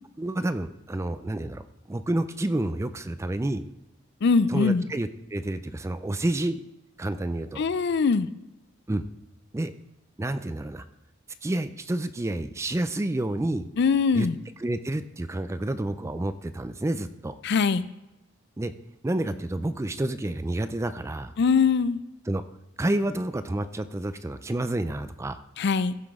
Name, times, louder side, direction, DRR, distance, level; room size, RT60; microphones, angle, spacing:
voice 1, 0.2-1.6 1.9-3.6 4.5-6.6 7.0-7.6 8.9-9.0 9.5-9.7 10.2-10.8 11.4-13.7 14.1-14.3 14.6-17.4 18.6-18.7 19.0-21.3 22.3-22.4 22.8-25.4, right 1 dB, 15° right, 11 dB, 0.4 m, -29 dB
voice 2, 4.2-4.9 7.6-8.3 13.8-14.4 17.4-17.8 21.4-22.0 25.6-26.0, left 5 dB, 55° left, 15 dB, 0.4 m, -22 dB
15.0 x 5.9 x 3.6 m, 0.94 s
head